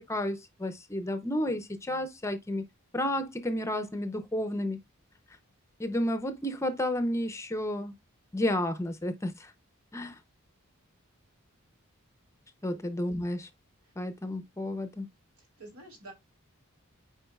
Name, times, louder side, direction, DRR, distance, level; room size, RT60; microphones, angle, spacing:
voice 1, 0.0-2.6 2.9-4.8 5.8-7.9 8.3-9.5 9.9-10.2 12.6-13.5 14.0-15.1, left 1 dB, 15° left, 0.6 m, -31 dB
voice 2, 15.4-16.1, right 2 dB, 75° right, 3.1 m, -49 dB
8.7 x 4.8 x 2.3 m
head